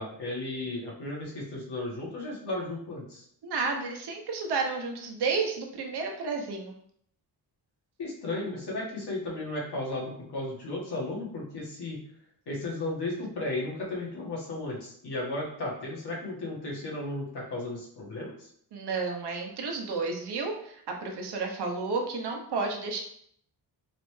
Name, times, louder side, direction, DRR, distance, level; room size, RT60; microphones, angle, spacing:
voice 1, 0.0-3.2 8.0-12.0 12.4-18.5, left 2 dB, 70° left, -4 dB, 1.6 m, -34 dB
voice 2, 3.4-6.7 18.7-23.0, right 4 dB, 75° right, 2 dB, 0.9 m, -31 dB
4.1 x 3.2 x 3.2 m, 0.67 s
wide cardioid pair, 140°, 40 cm